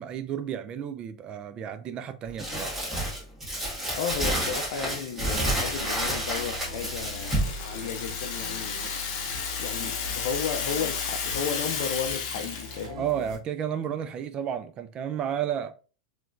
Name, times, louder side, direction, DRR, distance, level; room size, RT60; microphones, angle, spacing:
voice 1, 0.0-2.8 13.0-15.7, right 9 dB, 30° right, 0.4 m, -32 dB
Crumpling crinkling, 2.4-7.6, right 1 dB, 10° right, 1.7 m, -29 dB
voice 2, 3.9-8.9 9.6-13.0, left 7 dB, 65° left, 0.4 m, -34 dB
sound 1, 5.4-13.4, left 2 dB, 75° right, 0.9 m, -41 dB
Rattle (instrument), 6.1-12.9, left 6 dB, 50° left, 0.9 m, -33 dB
3.1 x 3.0 x 2.5 m
supercardioid pair, 135°, 3 cm